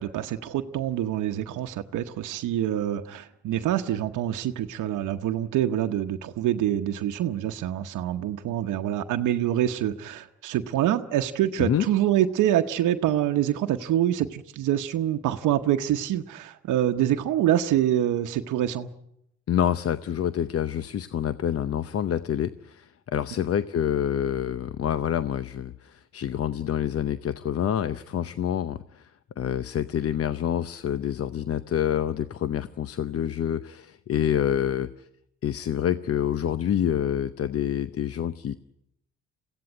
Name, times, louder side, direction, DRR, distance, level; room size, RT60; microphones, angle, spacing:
voice 1, 0.0-18.9, right 12 dB, 85° right, 6 dB, 0.9 m, -26 dB
voice 2, 19.5-29.1 29.4-34.9 35.4-38.6, left 9 dB, 50° left, 14 dB, 0.7 m, -27 dB
22.0 x 16.0 x 9.6 m, 0.81 s
cardioid pair, 90°, 30 cm